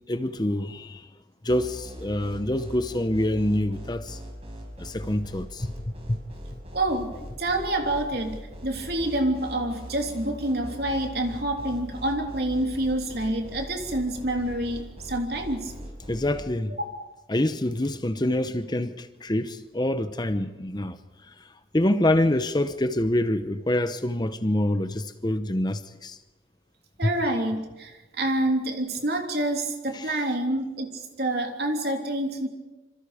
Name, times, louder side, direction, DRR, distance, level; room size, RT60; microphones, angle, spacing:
voice 1, 0.1-1.0 1.4-4.2 4.8-5.7 6.1-6.2 16.1-16.7 17.3-21.0 21.7-26.2 29.9-30.2, left 1 dB, 25° left, 0.8 m, -26 dB
sound 1, 1.5-16.4, equal, 35° right, 6.2 m, -40 dB
voice 2, 6.7-7.1 7.4-15.7 17.0-17.1 27.0-32.5, right 1 dB, 60° right, 3.3 m, -27 dB
27.0 x 26.5 x 5.1 m
head